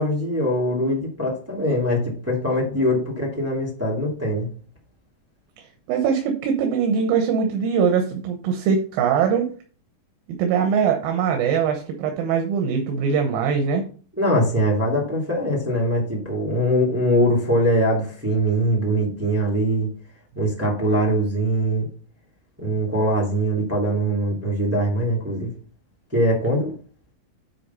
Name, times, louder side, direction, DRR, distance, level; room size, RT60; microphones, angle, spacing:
voice 1, 0.0-4.5 14.2-19.9 20.3-21.9 22.6-25.5 26.1-26.7, equal, 5° right, -2 dB, 1.6 m, -22 dB
voice 2, 5.9-9.5 10.3-13.8, right 6 dB, 85° right, 4 dB, 2.8 m, -22 dB
9.9 x 3.8 x 5.6 m, 0.41 s
omnidirectional pair, 4.1 m